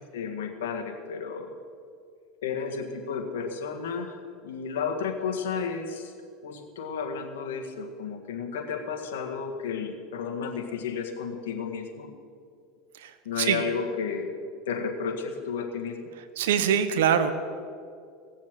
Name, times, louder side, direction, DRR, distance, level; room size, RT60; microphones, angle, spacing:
voice 1, 0.1-1.5 2.4-4.2 4.4-6.1 6.4-12.1 13.3-14.4 14.7-16.1, left 6 dB, 90° left, 3 dB, 1.7 m, -32 dB
voice 2, 16.4-17.3, right 8 dB, 85° right, 11 dB, 1.1 m, -23 dB
17.5 x 7.4 x 7.6 m, 2.3 s
supercardioid pair, 115°, 0 cm